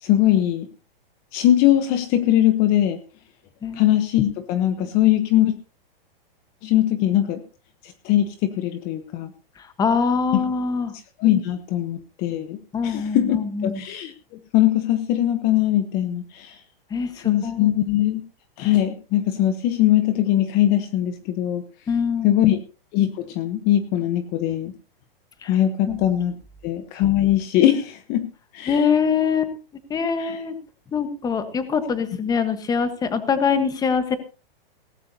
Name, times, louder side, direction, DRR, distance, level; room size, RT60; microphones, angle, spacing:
voice 1, 0.0-0.7 1.3-3.0 3.7-5.5 6.6-7.4 7.8-9.3 10.3-10.4 11.2-16.6 17.1-18.2 18.6-21.6 22.2-22.6 22.9-24.7 25.4-26.3 26.6-28.8 30.2-30.4, left 12 dB, 30° left, 10 dB, 1.1 m, -21 dB
voice 2, 3.6-3.9 9.6-10.9 12.7-13.8 16.9-17.7 21.9-22.5 25.4-25.5 25.9-26.0 28.7-29.5 29.9-30.5 30.9-34.2, left 6 dB, 15° left, 10 dB, 1.4 m, -23 dB
18.0 x 15.0 x 2.9 m, 0.34 s
hypercardioid pair, 150°, 30 cm